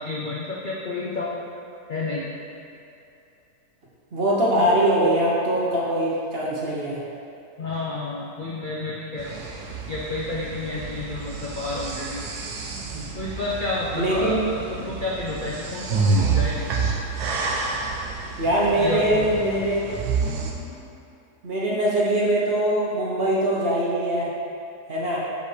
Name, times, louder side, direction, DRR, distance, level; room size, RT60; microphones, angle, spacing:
voice 1, 0.0-1.3 1.9-2.3 7.6-9.3 9.9-12.3 13.1-16.7 18.8-19.3 20.7-20.8, left 3 dB, 80° left, -5 dB, 0.4 m, -30 dB
voice 2, 4.1-7.0 14.0-14.4 18.4-19.9 21.4-24.3 24.9-25.2, right 1 dB, 45° right, -6 dB, 0.9 m, -22 dB
sound 1, 9.2-20.5, right 4 dB, 75° right, 1.2 m, -29 dB
6.5 x 5.3 x 3.3 m, 2.7 s
omnidirectional pair, 1.8 m